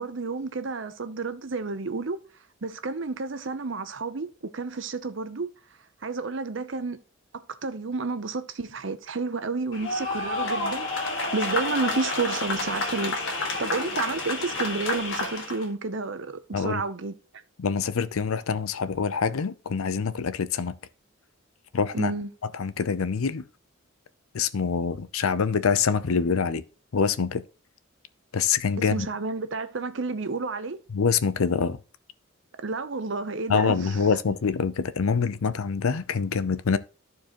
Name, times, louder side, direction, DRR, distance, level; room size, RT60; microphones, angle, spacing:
voice 1, 0.0-2.2 2.6-4.3 4.5-5.5 6.0-7.0 7.6-10.9 11.3-17.1 21.9-22.3 28.8-30.8 32.6-34.0, right 3 dB, 60° right, 0.7 m, -30 dB
sound 1, 9.7-15.6, left 2 dB, 60° left, 1.8 m, -29 dB
voice 2, 17.6-20.7 21.7-22.1 22.6-23.4 24.3-26.6 26.9-27.4 28.3-29.1 30.9-31.8 33.5-36.8, left 5 dB, 85° left, 0.6 m, -25 dB
14.0 x 4.7 x 3.0 m
head